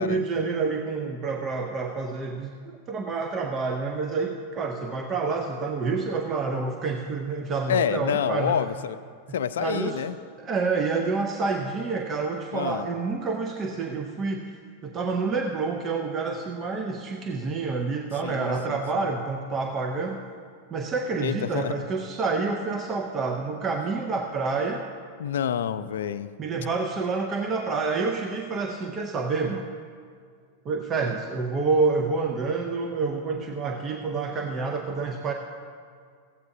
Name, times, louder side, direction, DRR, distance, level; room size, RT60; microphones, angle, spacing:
voice 1, 0.0-8.6 9.6-10.0 10.4-20.2 20.7-24.8 26.4-29.7 30.6-35.3, right 4 dB, 30° right, 3 dB, 0.6 m, -28 dB
voice 2, 7.7-9.0 9.3-10.2 12.5-12.9 18.2-19.1 21.2-21.7 25.2-26.3, left 9 dB, 75° left, 13 dB, 0.4 m, -28 dB
15.0 x 8.2 x 2.7 m, 2.1 s
hypercardioid pair, 105°, 0 cm